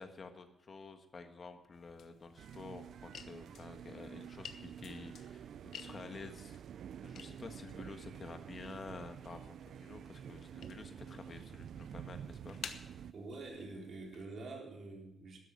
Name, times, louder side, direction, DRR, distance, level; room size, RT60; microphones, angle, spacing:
voice 1, 0.0-5.5 5.7-6.6 7.0-12.6, left 4 dB, 35° left, 7 dB, 1.5 m, -50 dB
sound 1, 1.7-14.3, left 7 dB, 80° left, 1.1 m, -55 dB
sound 2, 2.4-13.1, right 9 dB, 75° right, 0.4 m, -49 dB
voice 2, 13.1-15.4, right 3 dB, 55° right, -1 dB, 4.0 m, -46 dB
12.5 x 9.8 x 7.2 m, 0.84 s
wide cardioid pair, 155°, 0 cm